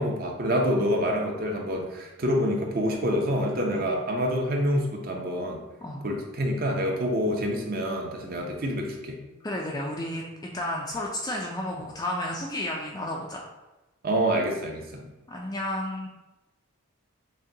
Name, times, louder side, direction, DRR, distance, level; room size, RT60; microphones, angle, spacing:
voice 1, 0.0-5.6 6.0-9.2 14.0-15.1, equal, 40° right, 1 dB, 0.6 m, -27 dB
voice 2, 9.4-13.4 15.3-16.1, left 1 dB, 15° left, -2 dB, 0.3 m, -32 dB
6.3 x 2.2 x 2.7 m, 1.0 s
head